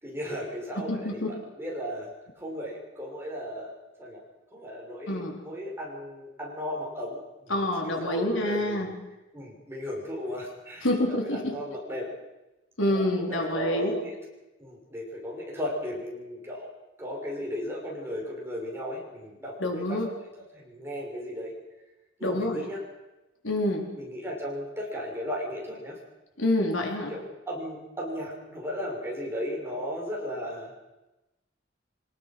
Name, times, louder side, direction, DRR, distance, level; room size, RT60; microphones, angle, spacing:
voice 1, 0.0-2.1 2.4-3.7 4.0-4.2 4.5-8.9 9.3-12.1 12.8-14.2 14.6-16.7 17.0-20.0 20.5-21.5 22.2-22.8 23.9-26.0 27.1-30.9, equal, 15° right, -2 dB, 6.4 m, -36 dB
voice 2, 0.8-1.3 5.1-5.4 7.5-8.9 10.8-11.6 12.8-13.9 19.6-20.1 22.2-22.7 23.4-23.9 26.4-27.1, left 1 dB, 80° left, 1 dB, 4.3 m, -27 dB
25.0 x 19.5 x 6.2 m, 1.0 s
head